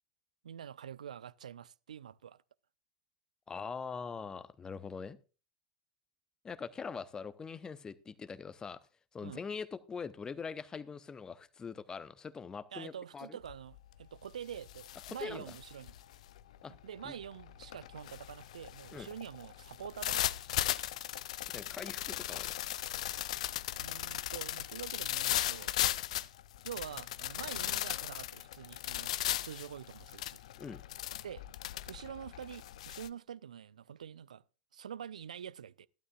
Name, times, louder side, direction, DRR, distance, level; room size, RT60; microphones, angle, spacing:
voice 1, 0.4-2.4 9.2-9.4 12.7-15.9 16.7-20.2 23.8-25.7 26.6-30.4 31.2-31.4 31.9-34.4 34.7-35.9, right 8 dB, 70° right, 0.4 m, -46 dB
voice 2, 3.5-5.2 6.4-8.8 9.1-13.4 15.1-15.4 16.6-16.7 17.0-17.1 18.9-19.1 21.5-22.5 30.6-30.8, left 5 dB, 20° left, 0.8 m, -42 dB
sound 1, 13.4-13.8 14.2-33.1, left 13 dB, 60° left, 0.5 m, -37 dB
14.5 x 12.5 x 2.4 m
figure-of-eight pair, 90°, 4 cm